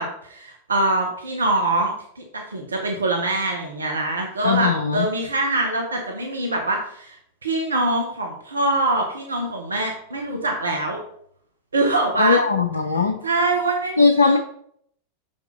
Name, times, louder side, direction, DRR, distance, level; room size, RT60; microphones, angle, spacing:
voice 1, 0.0-11.0 11.7-12.4 13.2-14.4, right 2 dB, 75° right, 1 dB, 1.1 m, -24 dB
voice 2, 4.4-5.1 12.2-13.2 14.0-14.4, left 4 dB, 75° left, 6 dB, 0.5 m, -19 dB
6.7 x 5.3 x 4.0 m, 0.67 s
figure-of-eight pair, 90°, 0 cm